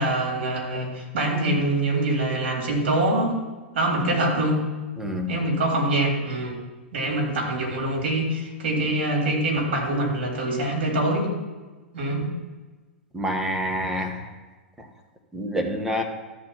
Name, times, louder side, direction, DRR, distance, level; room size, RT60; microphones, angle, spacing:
voice 1, 0.0-3.4 3.7-4.6 5.3-6.6 6.9-11.3 11.9-12.2, right 1 dB, 65° right, -2 dB, 3.5 m, -24 dB
voice 2, 5.0-5.3 13.1-14.3 14.8-14.9 15.3-16.0, equal, 5° right, 3 dB, 1.4 m, -27 dB
13.0 x 4.4 x 5.8 m, 1.3 s
hypercardioid pair, 100°, 6 cm